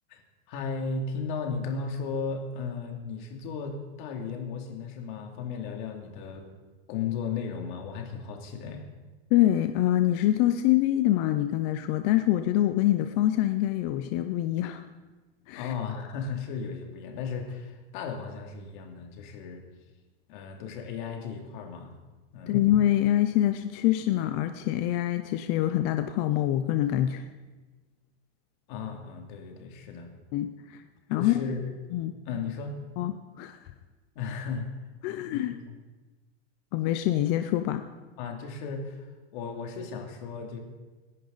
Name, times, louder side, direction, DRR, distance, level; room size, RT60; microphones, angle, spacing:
voice 1, 0.5-6.5 6.9-8.8 15.5-19.6 20.3-21.9 22.3-22.6 28.7-30.1 31.1-31.7 32.3-32.8 34.1-34.7 35.3-35.8 38.2-40.6, left 5 dB, 50° left, 2 dB, 2.7 m, -35 dB
voice 2, 9.3-14.8 15.5-15.7 22.5-27.3 30.3-30.8 31.1-31.4 31.9-32.1 33.0-33.6 35.0-35.5 36.7-37.8, left 13 dB, 25° left, 8 dB, 0.3 m, -25 dB
27.5 x 10.5 x 4.0 m, 1.2 s
supercardioid pair, 160°, 32 cm